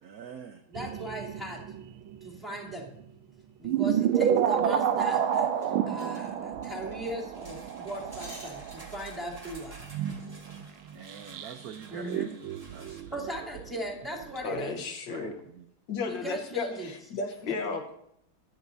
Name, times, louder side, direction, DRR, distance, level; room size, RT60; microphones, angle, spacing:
voice 1, 0.0-0.6 4.0-4.1 10.9-12.1 12.7-13.3 15.1-15.7, right 7 dB, 70° right, 7 dB, 0.9 m, -45 dB
voice 2, 0.7-1.6 2.2-2.9 3.6-9.8 11.9-12.3 13.1-14.8 16.1-16.9 17.4-17.5, right 1 dB, ahead, -5 dB, 2.9 m, -38 dB
sound 1, 0.7-2.3 2.7-3.0 3.6-11.7 12.0-14.3 14.6-14.7, right 9 dB, 85° right, 1.5 m, -30 dB
sound 2, 3.7-3.8 4.2-4.5 4.8-4.9 5.1-9.2 9.5-9.7, right 1 dB, 40° right, 4.9 m, -51 dB
sound 3, 7.3-13.0, right 1 dB, 20° right, 1.4 m, -52 dB
voice 3, 14.4-15.4 15.9-17.9, left 4 dB, 65° left, 5 dB, 1.6 m, -34 dB
25.0 x 9.2 x 2.7 m, 0.76 s
omnidirectional pair, 2.2 m